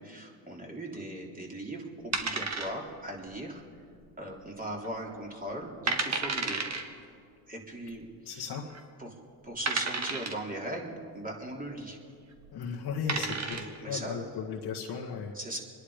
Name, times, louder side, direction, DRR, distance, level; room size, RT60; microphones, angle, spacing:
voice 1, 0.0-3.6 4.2-6.7 7.5-8.4 9.0-9.1 9.4-12.0 13.1-14.3 15.3-15.6, right 1 dB, 20° right, -1 dB, 3.5 m, -39 dB
sound 1, 2.1-3.1 3.3-3.4 4.1-4.5 4.8-4.9 5.5-5.6 5.9-6.8 7.9-8.0 8.7-8.8 9.7-10.5 12.3-12.5 12.9-13.8, right 4 dB, 35° right, 1.9 m, -31 dB
voice 2, 8.2-8.7 12.5-15.3, left 6 dB, 55° left, -2 dB, 1.7 m, -36 dB
25.5 x 10.5 x 5.1 m, 2.3 s
supercardioid pair, 70°, 46 cm